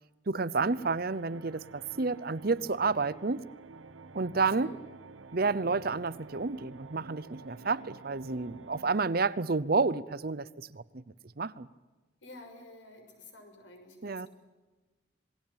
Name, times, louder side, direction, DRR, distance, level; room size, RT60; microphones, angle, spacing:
voice 1, 0.3-3.4 4.1-4.7 5.3-11.0 11.4-11.7 14.0-14.3, right 4 dB, 50° right, 17 dB, 0.8 m, -30 dB
sound 1, 0.5-9.0, right 3 dB, 90° right, 1.0 m, -50 dB
voice 2, 12.2-14.3, left 2 dB, 75° left, 5 dB, 6.5 m, -50 dB
27.5 x 20.5 x 8.9 m, 1.2 s
head